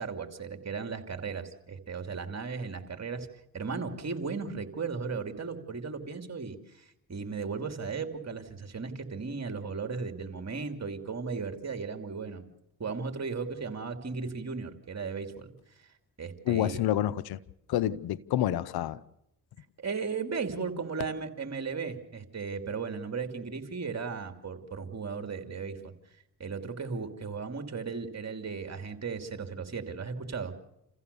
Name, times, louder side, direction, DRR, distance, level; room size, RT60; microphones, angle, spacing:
voice 1, 0.0-3.3 3.5-12.5 12.8-15.5 16.2-16.8 19.8-25.9 26.4-30.5, right 5 dB, 45° right, 2.9 m, -36 dB
voice 2, 16.5-17.4 17.7-19.0, left 12 dB, 85° left, 0.7 m, -28 dB
28.5 x 15.5 x 6.9 m
supercardioid pair, 50°, 37 cm